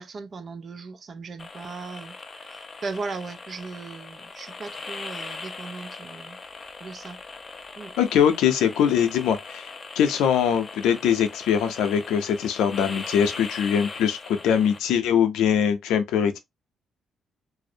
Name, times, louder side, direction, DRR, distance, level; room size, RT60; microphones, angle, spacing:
voice 1, 0.0-6.4 6.8-7.2 7.8-7.9, right 4 dB, 45° right, 0.4 m, -37 dB
sound 1, 1.4-14.8, left 3 dB, 30° left, 0.4 m, -40 dB
voice 2, 8.0-9.7 10.0-16.4, left 8 dB, 90° left, 0.5 m, -22 dB
2.5 x 2.0 x 2.6 m
cardioid pair, 90°, 0 cm